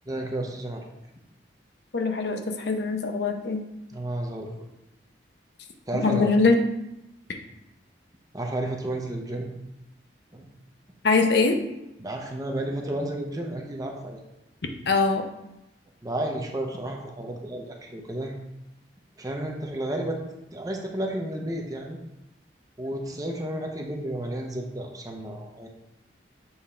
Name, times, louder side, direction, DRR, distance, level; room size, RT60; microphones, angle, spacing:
voice 1, 0.1-0.8 3.9-4.5 5.9-6.3 8.3-9.5 10.3-10.4 12.0-14.2 16.0-18.3 19.2-20.2 20.5-22.0 22.8-25.7, right 1 dB, 20° right, 1 dB, 0.7 m, -32 dB
voice 2, 1.9-3.6 5.9-6.6 11.0-11.6 14.9-15.2, left 4 dB, 65° left, 4 dB, 0.7 m, -22 dB
7.1 x 3.6 x 4.3 m, 0.90 s
head